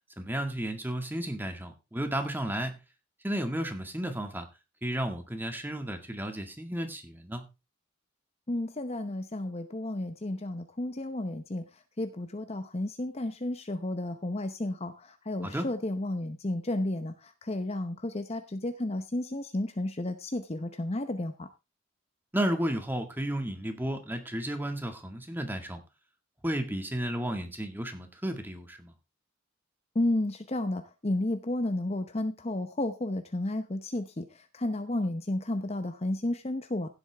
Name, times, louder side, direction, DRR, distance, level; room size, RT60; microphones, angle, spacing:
voice 1, 0.2-2.7 3.2-4.5 4.8-7.4 15.4-15.7 22.3-25.8 26.4-28.9, right 1 dB, 10° right, 5 dB, 1.9 m, -33 dB
voice 2, 8.5-11.6 12.0-21.5 29.9-34.2 34.5-36.9, left 1 dB, 30° left, 8 dB, 0.8 m, -32 dB
16.0 x 8.0 x 3.5 m, 0.27 s
head